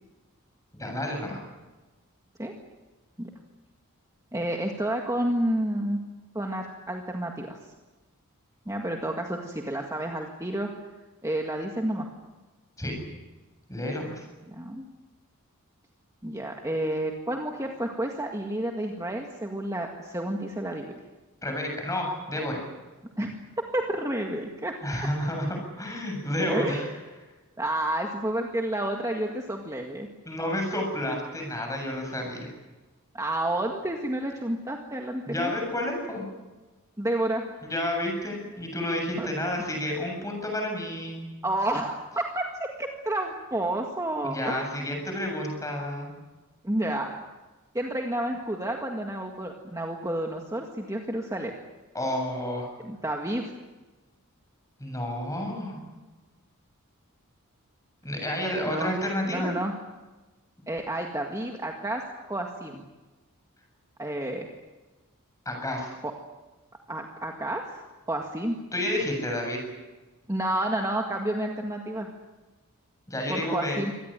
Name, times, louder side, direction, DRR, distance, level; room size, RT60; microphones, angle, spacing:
voice 1, 0.7-1.4 12.8-12.9 13.7-14.3 21.4-22.6 24.8-25.5 25.8-26.8 30.3-32.5 35.3-36.2 37.6-41.3 44.2-46.1 51.9-52.7 54.8-55.8 58.0-59.5 65.5-65.9 68.7-69.6 73.1-73.8, left 1 dB, 15° left, 2 dB, 7.6 m, -30 dB
voice 2, 4.3-6.0 6.3-7.6 8.7-10.7 11.2-12.1 14.5-14.8 16.2-21.0 23.2-23.4 23.7-24.7 26.4-26.9 27.6-30.1 33.1-35.5 37.0-37.4 39.2-39.3 41.4-44.7 46.6-47.2 47.7-51.5 52.8-53.4 58.7-58.9 59.2-59.7 60.7-62.0 62.3-62.8 64.0-64.5 66.0-66.1 66.9-67.8 68.1-68.6 70.3-72.1 73.3-73.9, right 1 dB, 15° right, 1 dB, 1.9 m, -30 dB
25.0 x 18.5 x 9.0 m, 1.2 s
head